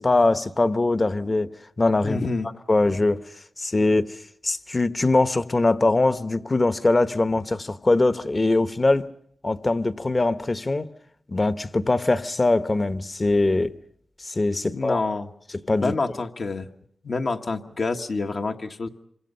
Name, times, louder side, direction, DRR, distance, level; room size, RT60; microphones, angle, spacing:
voice 1, 0.0-1.5 1.8-2.2 2.7-3.2 3.6-4.1 4.4-9.1 9.4-10.9 11.3-13.7 14.2-15.0 15.7-15.9, left 2 dB, 40° left, 1.1 m, -22 dB
voice 2, 2.0-2.5 14.6-15.3 15.8-16.7 17.0-18.9, left 3 dB, 70° left, 1.4 m, -27 dB
27.0 x 25.0 x 5.6 m
cardioid pair, 50°, 0 cm